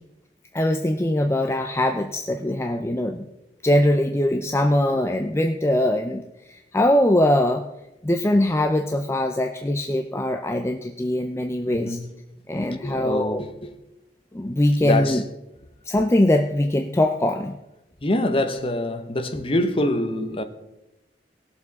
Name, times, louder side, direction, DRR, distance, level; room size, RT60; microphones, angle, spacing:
voice 1, 0.5-3.2 3.6-6.2 6.7-7.6 8.0-12.0 12.5-13.4 14.3-15.2 15.9-17.6, left 1 dB, 15° left, 0.5 m, -22 dB
voice 2, 11.7-12.1 12.8-13.7 14.8-15.3 18.0-20.4, left 1 dB, 30° left, 1.0 m, -25 dB
18.5 x 7.0 x 4.1 m
head